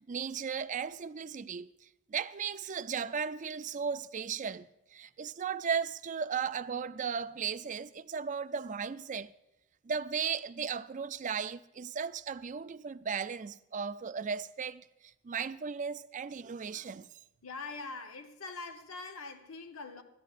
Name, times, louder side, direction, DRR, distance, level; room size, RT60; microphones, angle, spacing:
voice 1, 0.0-1.7 2.1-9.3 9.9-14.8 15.2-17.1, right 6 dB, 35° right, 0.4 m, -36 dB
voice 2, 17.4-20.0, left 3 dB, 75° left, 1.1 m, -43 dB
18.0 x 13.0 x 2.5 m
head